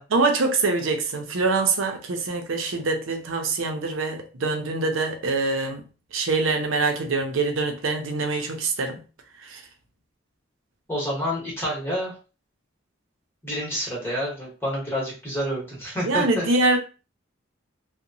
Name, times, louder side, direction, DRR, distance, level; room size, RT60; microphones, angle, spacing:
voice 1, 0.1-5.8 6.1-9.0 9.4-9.6 16.0-16.8, right 3 dB, 80° right, 0.6 m, -24 dB
voice 2, 10.9-12.1 13.4-16.4, equal, 10° left, 0.9 m, -28 dB
2.8 x 2.1 x 2.6 m
head